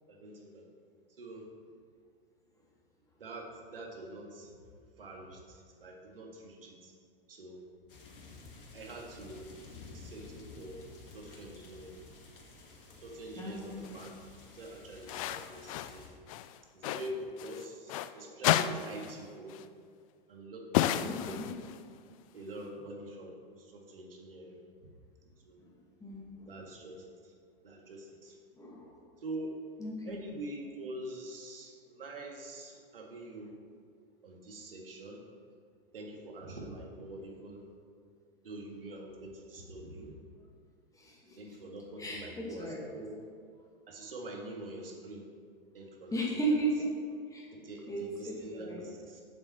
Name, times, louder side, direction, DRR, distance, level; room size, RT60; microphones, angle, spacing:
voice 1, 0.1-0.6 1.2-1.4 3.2-4.5 5.0-6.9 7.3-7.6 8.7-9.4 9.9-10.8 11.1-11.9 13.0-14.1 14.6-16.1 16.7-19.6 20.3-21.6 22.3-24.6 25.4-25.6 26.5-27.3 27.6-28.3 29.2-29.5 30.0-33.5 34.2-35.2 35.9-37.6 38.4-40.1 41.4-42.7 42.9-43.1 43.9-45.2 45.7-46.4 47.5-49.2, right 1 dB, 70° right, 0 dB, 2.0 m, -45 dB
sound 1, 7.9-16.1, left 3 dB, 65° left, 1.9 m, -52 dB
voice 2, 13.4-14.0 21.0-21.6 26.0-26.5 28.6-29.0 29.8-30.2 41.0-41.4 42.0-42.8 46.1-46.9 47.3-47.5 47.9-48.9, right 2 dB, 10° left, -3 dB, 2.2 m, -35 dB
sound 2, 13.8-14.1 15.1-16.0 16.3-18.1 18.4-19.2 19.5-19.7 20.7-21.9, left 12 dB, 35° left, 0.4 m, -32 dB
7.6 x 7.5 x 5.9 m, 2.2 s
figure-of-eight pair, 100°, 29 cm